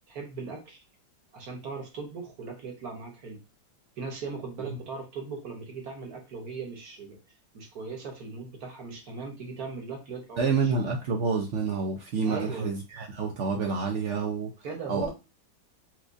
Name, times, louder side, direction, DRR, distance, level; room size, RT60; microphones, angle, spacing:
voice 1, 0.1-0.8 1.3-3.4 4.0-7.2 7.5-10.7 12.2-12.7 14.6-15.1, right 4 dB, 60° right, 2 dB, 1.4 m, -39 dB
voice 2, 10.4-14.5 14.9-15.1, right 5 dB, 80° right, 1 dB, 0.6 m, -28 dB
4.6 x 2.4 x 2.5 m, 0.27 s
omnidirectional pair, 1.9 m